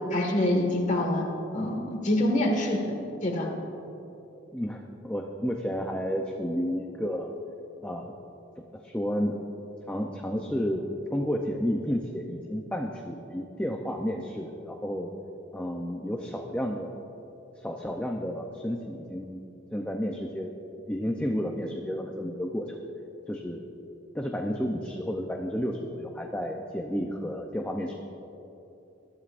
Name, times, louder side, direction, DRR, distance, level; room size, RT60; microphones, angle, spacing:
voice 1, 0.1-1.2 1.5-2.9 3.2-3.5, left 1 dB, 40° left, 1 dB, 1.7 m, -25 dB
voice 2, 4.5-7.4 7.8-8.1 8.6-9.4 9.9-10.8 11.1-15.1 15.5-16.9 17.6-19.4 19.7-20.6 20.9-22.8 23.3-23.6 24.1-27.9, equal, 5° left, 1 dB, 0.6 m, -31 dB
21.5 x 13.0 x 2.6 m, 3.0 s
head